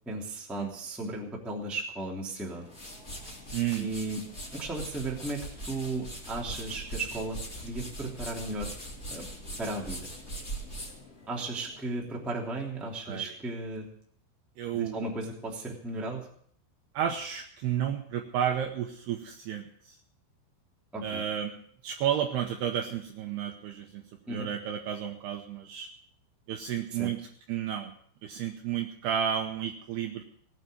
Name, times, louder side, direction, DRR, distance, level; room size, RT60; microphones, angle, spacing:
voice 1, 0.0-2.7 3.7-4.2 4.5-8.7 9.1-9.3 9.6-10.1 11.3-13.9 14.7-16.3 20.9-21.2 24.3-24.5 26.9-27.1, right 2 dB, ahead, -2 dB, 1.4 m, -35 dB
sound 1, 2.5-11.9, right 1 dB, 20° left, 2.2 m, -41 dB
voice 2, 3.5-3.9 13.1-13.3 14.6-15.1 16.9-20.0 21.0-21.5 21.8-24.0 24.3-25.9 26.5-27.2 27.5-27.9 28.2-30.2, right 9 dB, 75° right, 3 dB, 2.5 m, -32 dB
18.5 x 9.0 x 6.7 m, 0.63 s
omnidirectional pair, 5.7 m